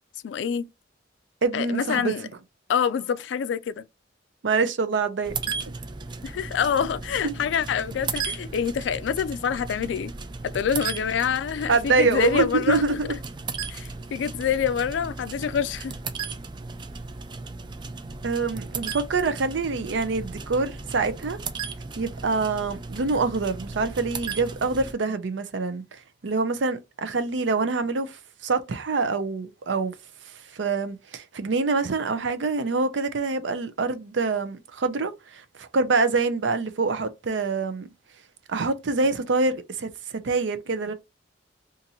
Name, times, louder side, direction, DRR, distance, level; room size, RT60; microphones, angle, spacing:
voice 1, 0.2-0.7 1.5-2.3 2.7-3.9 6.2-10.1 10.4-13.0 13.7-15.9, left 7 dB, 75° left, 0.3 m, -26 dB
voice 2, 1.4-2.1 4.4-5.3 7.2-7.3 11.7-13.1 18.2-21.4 22.0-25.8 26.2-29.9 30.5-37.9 38.5-40.9, right 4 dB, 80° right, 0.5 m, -25 dB
sound 1, 5.2-24.9, right 4 dB, 25° right, 0.3 m, -36 dB
2.8 x 2.5 x 3.9 m
head